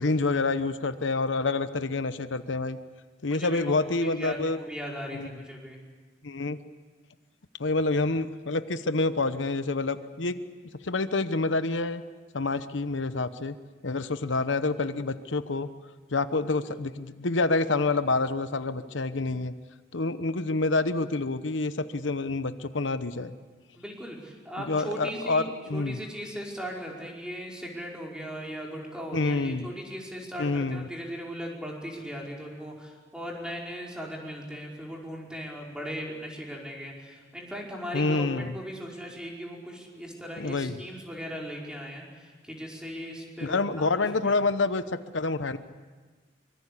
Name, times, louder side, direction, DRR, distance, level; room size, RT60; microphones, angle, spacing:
voice 1, 0.0-2.8 3.2-4.6 5.1-5.3 6.2-6.6 7.6-10.4 10.8-12.0 12.3-13.5 13.8-15.7 16.1-19.5 19.9-23.3 24.7-26.0 29.1-29.7 30.4-30.9 37.9-38.5 40.4-40.8 43.4-44.8 45.1-45.6, left 3 dB, 85° left, 11 dB, 0.9 m, -27 dB
voice 2, 3.3-5.8 23.7-44.4, equal, 5° right, -2 dB, 5.1 m, -38 dB
24.5 x 23.0 x 8.4 m, 1.4 s
head